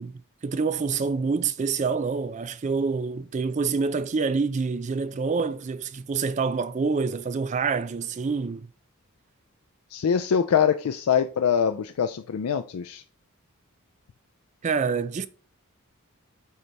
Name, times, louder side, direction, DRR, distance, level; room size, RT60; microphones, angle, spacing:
voice 1, 0.0-8.7 14.6-15.3, right 5 dB, 35° right, 0.3 m, -27 dB
voice 2, 9.9-13.0, left 7 dB, 80° left, 0.4 m, -24 dB
6.9 x 4.1 x 3.3 m
head